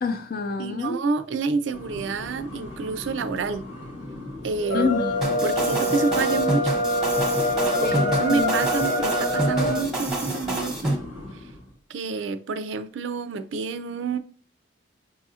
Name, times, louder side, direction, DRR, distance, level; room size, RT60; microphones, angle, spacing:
voice 1, 0.0-1.0 4.7-5.3 7.8-8.5, left 4 dB, 50° left, 0.5 m, -27 dB
voice 2, 0.6-3.7 4.4-4.9 5.4-6.8 7.8-10.9 11.9-14.2, right 4 dB, 75° right, 0.4 m, -28 dB
sound 1, 1.7-11.8, left 1 dB, 90° left, 1.4 m, -39 dB
sound 2, 4.6-9.9, left 1 dB, 70° left, 0.9 m, -24 dB
sound 3, 5.2-11.0, right 1 dB, ahead, 0.9 m, -28 dB
5.4 x 2.4 x 2.7 m
head